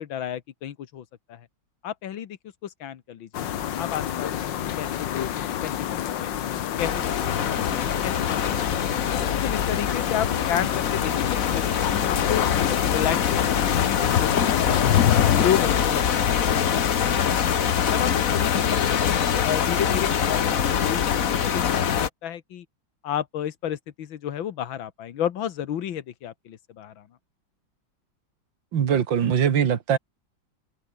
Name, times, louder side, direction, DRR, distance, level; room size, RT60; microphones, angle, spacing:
voice 1, 0.0-1.5 1.8-3.5 3.8-5.7 6.0-9.0 9.3-12.4 12.7-16.4 16.7-17.4 17.9-22.7 23.0-27.1, left 10 dB, 85° left, 2.0 m, -32 dB
sound 1, 3.3-15.8, left 11 dB, 70° left, 1.7 m, -27 dB
sound 2, 6.8-22.1, left 8 dB, 50° left, 1.4 m, -24 dB
voice 2, 28.7-30.0, right 8 dB, 75° right, 2.3 m, -21 dB
omnidirectional pair, 2.1 m